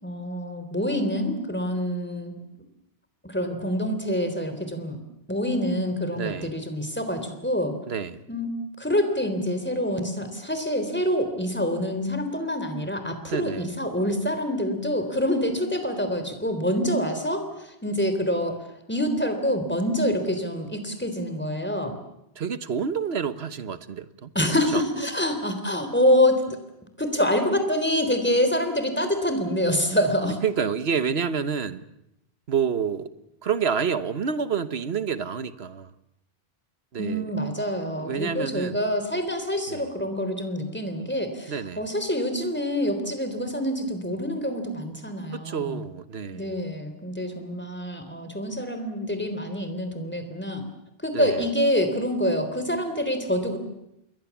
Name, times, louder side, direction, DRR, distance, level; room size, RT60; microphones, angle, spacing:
voice 1, 0.0-2.3 3.2-5.0 5.3-7.8 8.3-8.5 8.8-18.6 18.9-22.0 24.4-26.6 27.0-30.4 37.0-45.8 46.3-50.6 51.0-53.6, equal, 10° left, 7 dB, 3.6 m, -26 dB
voice 2, 6.1-6.5 7.9-8.2 13.2-13.7 22.4-24.3 24.7-24.8 30.2-31.8 32.5-33.1 33.4-35.9 36.9-37.3 38.0-38.8 39.7-39.9 41.5-41.9 45.3-46.6 51.1-51.4, right 6 dB, 90° right, 13 dB, 1.4 m, -28 dB
28.5 x 22.0 x 7.2 m, 0.81 s
omnidirectional pair, 1.0 m